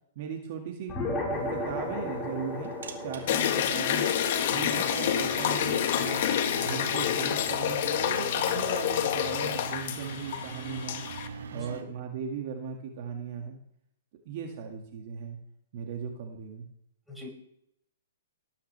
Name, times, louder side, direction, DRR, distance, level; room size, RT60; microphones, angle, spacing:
voice 1, 0.2-0.9 1.3-2.7 3.0-4.2 4.5-6.2 6.6-11.0 11.5-13.6 14.3-15.4 15.7-16.6, right 7 dB, 50° right, 2 dB, 2.2 m, -38 dB
sound 1, 0.9-5.7, left 2 dB, 15° left, 5.0 m, -35 dB
sound 2, 1.3-11.8, right 6 dB, 75° right, 2.2 m, -42 dB
sound 3, 3.3-11.3, left 10 dB, 55° left, 1.6 m, -28 dB
voice 2, 4.5-4.6 11.5-11.7 17.1-17.3, left 1 dB, ahead, -3 dB, 5.2 m, -42 dB
18.5 x 9.9 x 3.5 m, 0.76 s
hypercardioid pair, 140°, 0 cm